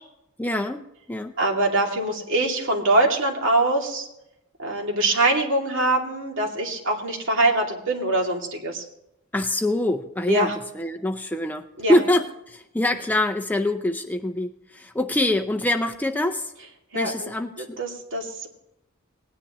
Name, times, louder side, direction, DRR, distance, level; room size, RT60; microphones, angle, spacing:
voice 1, 0.4-0.8 1.1-1.3 9.3-16.5 16.9-17.8, left 1 dB, 10° left, 5 dB, 0.5 m, -25 dB
voice 2, 1.4-4.1 4.6-8.8 10.3-10.5 11.8-12.0 16.9-17.3 17.6-18.5, right 2 dB, 60° right, 1 dB, 2.5 m, -23 dB
19.0 x 10.0 x 3.0 m, 0.83 s
head